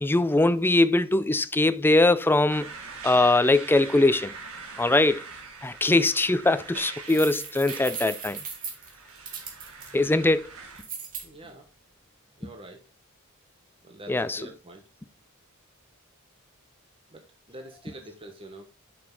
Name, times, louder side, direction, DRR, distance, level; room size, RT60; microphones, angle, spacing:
voice 1, 0.0-2.7 3.0-4.3 4.8-5.2 5.6-8.4 9.9-10.4 14.1-14.4, left 2 dB, 10° left, 0.4 m, -21 dB
sound 1, 2.5-10.8, right 4 dB, 75° right, 2.0 m, -43 dB
sound 2, 7.1-9.9 10.8-11.2, right 6 dB, 40° right, 2.3 m, -37 dB
voice 2, 11.2-11.7 12.4-12.8 13.8-14.8 17.1-18.6, right 1 dB, 25° right, 1.3 m, -45 dB
7.6 x 6.2 x 3.8 m
head